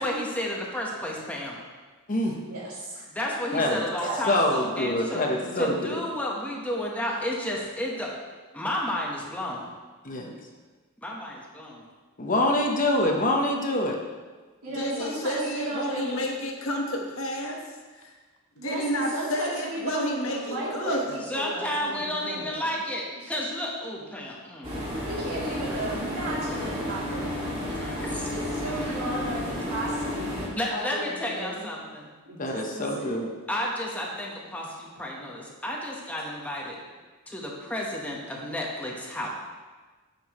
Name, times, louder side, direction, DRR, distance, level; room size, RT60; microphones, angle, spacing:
voice 1, 0.0-1.6 3.1-5.2 5.6-8.1 8.5-9.7 11.0-11.8 21.3-24.7 26.5-26.9 27.7-28.3 28.7-28.9 30.5-32.1 33.5-36.8 37.3-39.3, left 1 dB, 5° left, -2 dB, 1.1 m, -32 dB
voice 2, 2.5-3.0 4.0-4.2 5.4-5.9 14.6-16.2 18.6-22.7 25.0-27.6 28.3-31.7 32.3-33.1, right 1 dB, 85° right, -7 dB, 2.8 m, -35 dB
voice 3, 4.3-6.0 10.0-10.3 12.2-14.0 32.4-33.3, left 1 dB, 40° left, 1 dB, 1.0 m, -25 dB
voice 4, 14.7-17.6 17.9-18.1 18.6-21.2, equal, 65° left, 1 dB, 1.3 m, -30 dB
sound 1, 24.6-30.5, left 1 dB, 25° right, 2.2 m, -32 dB
9.5 x 7.0 x 3.0 m, 1.4 s
head